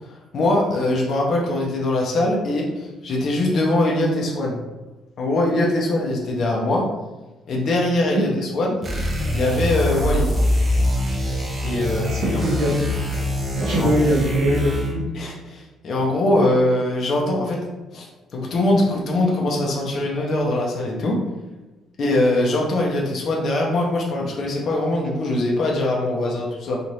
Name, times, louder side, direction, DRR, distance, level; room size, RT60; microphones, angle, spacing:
voice 1, 0.1-4.6 5.2-6.9 7.5-10.3 11.6-12.4 13.7-13.9 15.1-17.6 17.9-21.2 22.0-26.8, left 1 dB, 45° left, -2 dB, 0.6 m, -22 dB
sound 1, 8.8-15.1, left 1 dB, 20° right, 0.6 m, -24 dB
voice 2, 12.1-12.7 13.6-15.0, right 1 dB, 65° right, -7 dB, 0.9 m, -21 dB
3.1 x 2.4 x 2.7 m, 1.1 s
cardioid pair, 160°, 0 cm